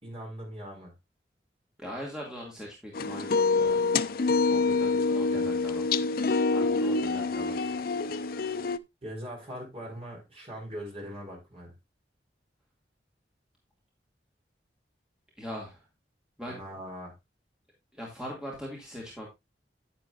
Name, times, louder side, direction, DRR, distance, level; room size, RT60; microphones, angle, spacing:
voice 1, 0.0-0.9 4.9-5.5 9.0-11.7 16.5-17.1, equal, 35° right, 5.0 m, -41 dB
voice 2, 1.8-3.9 4.5-5.9 6.5-7.8 15.4-15.9 16.4-16.6 17.9-19.3, equal, 5° right, 2.2 m, -41 dB
sound 1, 2.9-8.8, left 4 dB, 55° left, 0.5 m, -26 dB
9.9 x 9.7 x 2.5 m
head